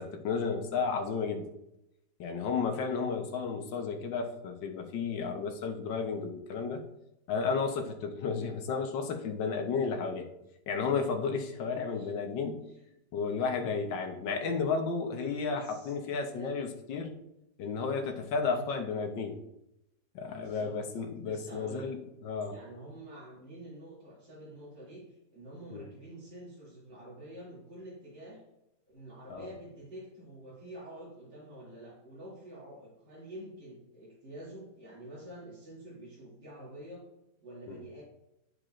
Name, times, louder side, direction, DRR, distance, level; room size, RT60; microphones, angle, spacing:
voice 1, 0.0-1.5 2.2-6.8 7.3-10.3 10.7-12.6 13.1-17.1 17.6-19.4 20.1-22.0 22.2-22.5 25.7-25.8 29.3-29.5 37.7-37.8, left 5 dB, 75° left, 5 dB, 1.6 m, -33 dB
voice 2, 15.5-15.9 16.3-16.5 18.4-18.7 20.3-20.8 21.2-21.9 22.5-28.4 28.9-37.0 37.4-38.0, right 1 dB, 80° right, -9 dB, 3.3 m, -47 dB
12.0 x 4.7 x 2.5 m, 0.87 s
omnidirectional pair, 2.0 m